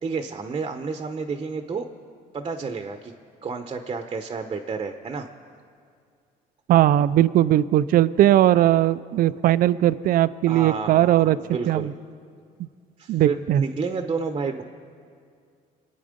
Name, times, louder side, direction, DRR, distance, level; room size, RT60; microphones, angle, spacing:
voice 1, 0.0-1.9 2.3-3.1 3.4-5.3 10.5-11.9 13.0-14.6, right 4 dB, 30° right, 7 dB, 0.9 m, -30 dB
voice 2, 6.7-11.4 11.7-11.9 13.1-13.6, right 13 dB, 60° right, 17 dB, 0.5 m, -19 dB
26.0 x 9.4 x 5.2 m, 2.2 s
cardioid pair, 110°, 17 cm